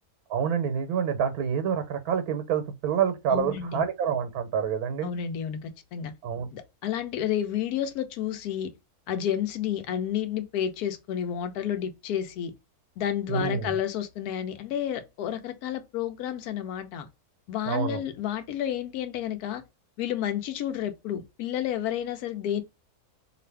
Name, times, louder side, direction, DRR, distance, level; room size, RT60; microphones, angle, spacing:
voice 1, 0.3-5.1 6.2-6.5 13.3-13.7 17.7-18.0, right 7 dB, 90° right, 1.1 m, -27 dB
voice 2, 3.3-3.8 5.0-6.1 6.5-8.7 9.1-12.5 13.0-17.1 17.5-19.6 20.0-22.6, left 10 dB, 85° left, 1.1 m, -30 dB
2.7 x 2.5 x 3.2 m
omnidirectional pair, 1.6 m